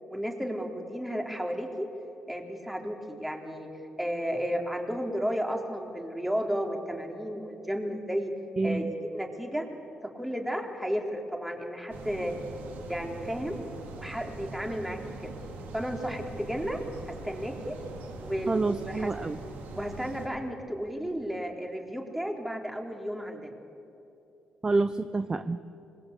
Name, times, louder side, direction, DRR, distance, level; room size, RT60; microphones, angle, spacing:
voice 1, 0.1-1.9 2.3-3.7 4.0-8.3 8.6-8.9 9.1-9.7 10.1-12.3 12.9-13.6 14.0-15.1 15.7-16.8 17.2-17.8 18.2-19.1 19.7-23.6, equal, 5° right, 2 dB, 3.9 m, -33 dB
voice 2, 8.6-8.9 18.5-19.4 24.6-25.6, right 3 dB, 25° right, 11 dB, 0.8 m, -28 dB
sound 1, 11.9-20.3, right 3 dB, 80° right, 3.1 m, -42 dB
25.5 x 21.0 x 8.5 m, 2.8 s
cardioid pair, 75°, 3 cm